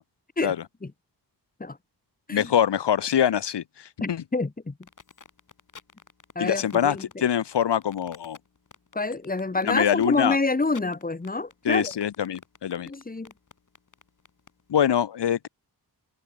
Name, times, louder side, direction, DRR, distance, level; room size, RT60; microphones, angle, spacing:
voice 1, 2.3-3.6 4.1-4.2 6.4-8.4 9.6-10.4 11.6-12.9 14.7-15.5, left 9 dB, 90° left, 1.3 m, -24 dB
voice 2, 4.0-4.8 6.4-7.3 8.9-11.9 12.9-13.3, left 3 dB, 20° left, 2.4 m, -27 dB
sound 1, 4.8-14.8, left 5 dB, 50° left, 4.0 m, -50 dB
wide cardioid pair, 165°, 40 cm